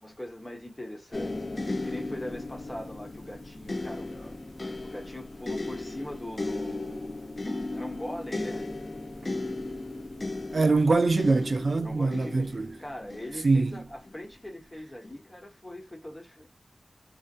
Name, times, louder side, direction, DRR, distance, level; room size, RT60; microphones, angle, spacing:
voice 1, 0.0-7.5 7.7-8.7 11.8-16.5, left 1 dB, 20° left, 1.0 m, -41 dB
sound 1, 1.1-14.2 15.0-15.2, left 2 dB, 40° left, 0.4 m, -36 dB
voice 2, 10.5-12.7 13.4-13.8, right 3 dB, 60° right, 0.3 m, -23 dB
2.7 x 2.1 x 2.4 m
wide cardioid pair, 90°, 0 cm